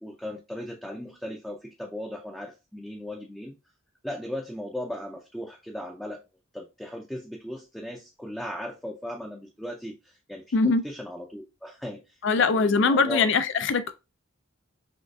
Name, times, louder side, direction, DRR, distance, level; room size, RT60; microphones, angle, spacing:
voice 1, 0.0-3.5 4.0-6.2 6.5-13.3, left 1 dB, ahead, 0.5 m, -37 dB
voice 2, 10.5-10.8 12.2-13.9, left 4 dB, 65° left, 0.4 m, -22 dB
6.3 x 2.4 x 2.3 m
head